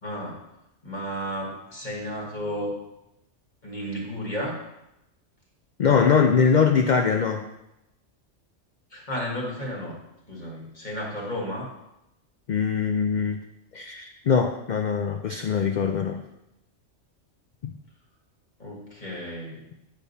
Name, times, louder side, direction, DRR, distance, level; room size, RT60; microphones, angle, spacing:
voice 1, 0.0-0.4 0.8-2.8 3.6-4.6 8.9-10.0 10.3-11.7 18.6-19.7, equal, 40° left, -3 dB, 1.6 m, -33 dB
voice 2, 5.8-7.4 12.5-13.4 13.7-16.2, left 6 dB, 60° left, 5 dB, 0.5 m, -22 dB
9.0 x 5.2 x 4.1 m, 0.89 s
omnidirectional pair, 1.3 m